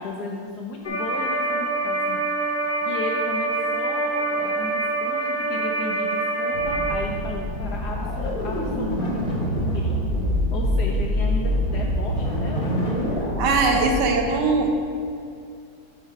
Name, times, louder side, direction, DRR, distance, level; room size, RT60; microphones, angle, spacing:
voice 1, 0.0-2.2 2.8-10.1 10.5-13.9, left 3 dB, 70° left, -1 dB, 1.0 m, -34 dB
sound 1, 0.8-6.9, right 3 dB, 15° left, 0.5 m, -25 dB
sound 2, 6.5-14.2, equal, 35° left, 1.0 m, -25 dB
voice 2, 13.4-14.7, right 3 dB, 65° right, 2 dB, 1.3 m, -20 dB
6.5 x 4.5 x 5.8 m, 2.4 s
omnidirectional pair, 2.2 m